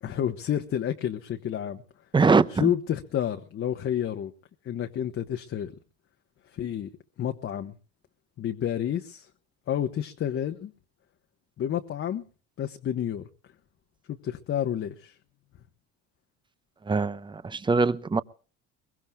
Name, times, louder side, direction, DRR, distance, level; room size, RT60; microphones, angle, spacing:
voice 1, 0.0-1.8 2.6-4.3 4.6-5.8 6.5-6.9 7.2-7.7 8.4-9.3 9.7-10.7 11.6-12.2 12.6-13.2 14.1-15.1, left 10 dB, 45° left, 1.2 m, -30 dB
voice 2, 2.1-2.7 16.8-18.2, right 4 dB, 15° right, 0.8 m, -22 dB
23.0 x 22.5 x 2.3 m
cardioid pair, 110°, 30 cm